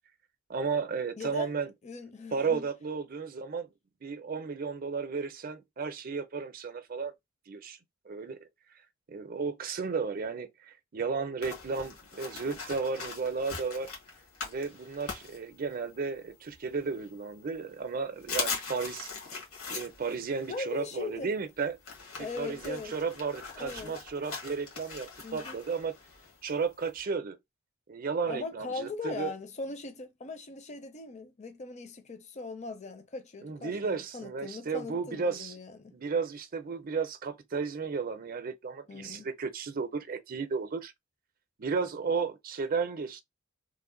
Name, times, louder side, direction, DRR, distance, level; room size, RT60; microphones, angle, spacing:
voice 1, 0.5-1.7 2.3-3.7 4.0-7.1 7.5-7.8 8.1-8.4 9.1-13.9 14.4-19.1 19.7-21.8 22.2-25.9 26.4-27.4 27.9-29.3 33.4-35.6 35.9-40.9 41.6-43.2, right 5 dB, 40° right, 0.5 m, -33 dB
voice 2, 1.2-1.5 1.8-2.7 20.4-21.3 22.2-22.9 23.6-24.0 25.2-25.6 28.3-35.9 38.9-39.3, left 3 dB, 35° left, 0.6 m, -40 dB
sound 1, 11.4-16.1 16.5-17.4 17.8-17.9 18.2-27.0, left 5 dB, 80° left, 1.5 m, -41 dB
3.1 x 2.1 x 3.7 m
head